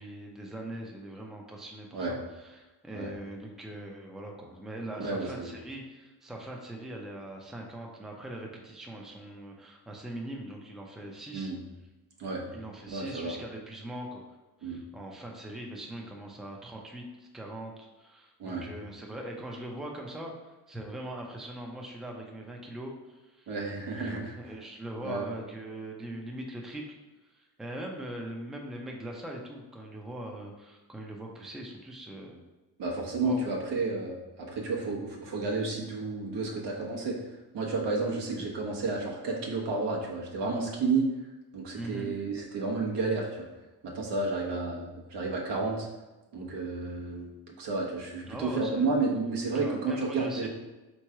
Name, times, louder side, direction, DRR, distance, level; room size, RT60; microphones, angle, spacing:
voice 1, 0.0-11.5 12.5-14.2 14.6-23.6 24.0-27.0 27.2-32.4 33.2-33.4 41.7-42.1 48.3-48.9 49.5-50.5, right 1 dB, ahead, 0 dB, 0.5 m, -41 dB
voice 2, 5.0-5.5 11.3-11.6 12.2-12.4 12.9-13.4 14.6-14.8 18.4-18.7 23.5-24.4 25.0-25.3 32.8-37.2 37.5-41.1 41.5-43.5 43.8-45.9 46.3-50.5, right 3 dB, 80° right, -1 dB, 1.0 m, -31 dB
3.6 x 3.1 x 4.6 m, 1.1 s
cardioid pair, 110°, 41 cm